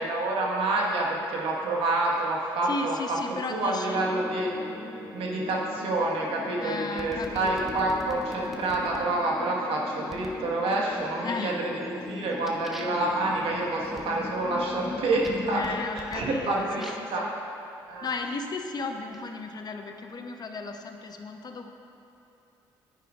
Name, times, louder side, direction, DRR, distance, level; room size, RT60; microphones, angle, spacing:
voice 1, 0.0-3.2 3.5-4.5 5.1-17.3 17.9-18.1, right 2 dB, 70° right, -2 dB, 1.5 m, -28 dB
voice 2, 2.6-4.0 6.6-7.7 11.2-11.6 15.5-17.3 18.0-21.7, left 4 dB, 45° left, 5 dB, 0.8 m, -35 dB
sound 1, 3.9-15.9, left 4 dB, 20° left, 0.3 m, -40 dB
sound 2, 7.0-9.0 10.1-10.4 10.9-11.4 11.8-17.2 18.0-19.2, equal, ahead, 1.1 m, -46 dB
9.8 x 9.5 x 2.5 m, 3.0 s
supercardioid pair, 60°, 10 cm